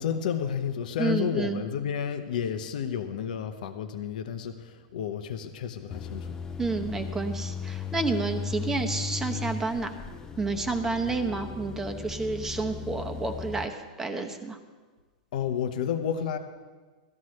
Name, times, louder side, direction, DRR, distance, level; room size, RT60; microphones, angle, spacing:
voice 1, 0.0-6.4 15.3-16.4, left 8 dB, 70° left, 7 dB, 0.9 m, -31 dB
voice 2, 1.0-1.6 6.6-9.9 10.4-14.6, right 3 dB, 10° right, 5 dB, 0.9 m, -30 dB
sound 1, 5.9-13.7, left 6 dB, 15° left, 0.5 m, -36 dB
18.0 x 13.0 x 3.2 m, 1.4 s
supercardioid pair, 155°, 5 cm